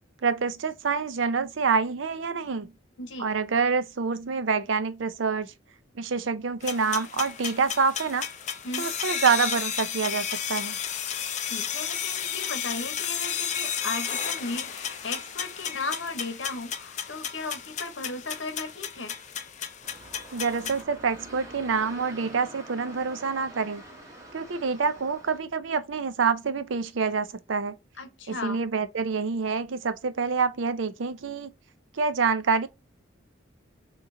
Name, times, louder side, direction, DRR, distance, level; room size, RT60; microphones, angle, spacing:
voice 1, 0.2-2.7 3.2-5.5 6.0-8.3 8.8-10.8 20.3-23.8 24.3-27.7 28.3-31.5 31.9-32.7, right 5 dB, 80° right, 0.6 m, -27 dB
voice 2, 3.0-3.3 8.6-8.9 11.4-19.1 28.0-28.6, left 3 dB, 75° left, 1.1 m, -36 dB
sound 1, 6.6-20.8, left 8 dB, 40° left, 0.5 m, -33 dB
sound 2, 19.8-25.4, right 1 dB, 15° right, 1.4 m, -46 dB
3.7 x 2.9 x 3.8 m
head